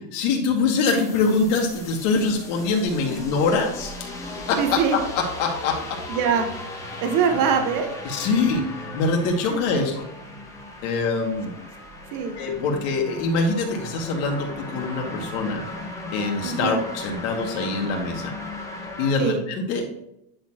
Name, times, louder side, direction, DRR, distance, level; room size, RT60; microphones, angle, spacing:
voice 1, 0.1-4.1 4.5-4.8 5.2-6.0 8.0-8.6 8.9-10.0 10.8-11.5 12.4-15.6 16.1-18.3 19.0-19.9, left 4 dB, 55° left, 1 dB, 2.1 m, -24 dB
sound 1, 0.9-19.1, left 2 dB, 5° left, 1.3 m, -37 dB
voice 2, 4.6-5.0 6.1-6.5 7.0-7.9 9.5-9.8 12.1-12.3 16.4-16.8 19.2-19.4, right 6 dB, 40° right, 5 dB, 1.1 m, -23 dB
10.0 x 4.4 x 2.9 m, 0.81 s
supercardioid pair, 140°, 49 cm